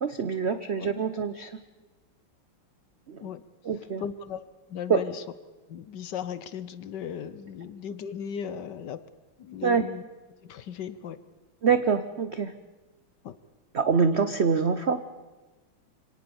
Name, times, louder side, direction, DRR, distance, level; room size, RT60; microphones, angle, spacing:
voice 1, 0.0-1.5 3.1-3.2 3.6-4.0 4.9-5.0 9.6-9.8 11.6-12.5 13.7-15.0, right 5 dB, 80° right, 11 dB, 0.5 m, -25 dB
voice 2, 4.0-4.4 4.7-5.2 5.7-9.0 9.4-10.0 10.4-11.2 13.2-13.4, left 8 dB, 60° left, 15 dB, 1.3 m, -37 dB
25.0 x 18.0 x 7.0 m, 1.2 s
omnidirectional pair, 2.3 m